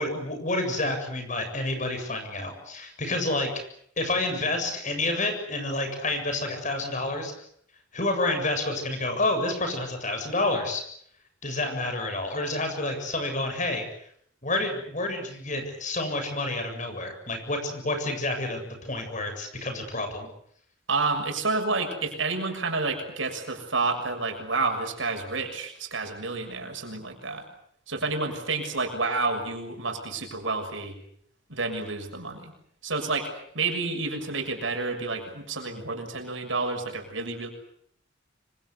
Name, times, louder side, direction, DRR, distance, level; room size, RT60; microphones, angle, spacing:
voice 1, 0.0-3.5 4.0-7.3 7.9-10.8 11.4-13.8 14.4-20.3, left 2 dB, 40° left, 6 dB, 7.5 m, -29 dB
voice 2, 20.9-27.5 27.9-31.0 31.5-32.5 32.8-33.3 33.5-37.5, right 3 dB, 75° right, 4 dB, 6.8 m, -29 dB
26.5 x 25.0 x 8.2 m, 0.67 s
head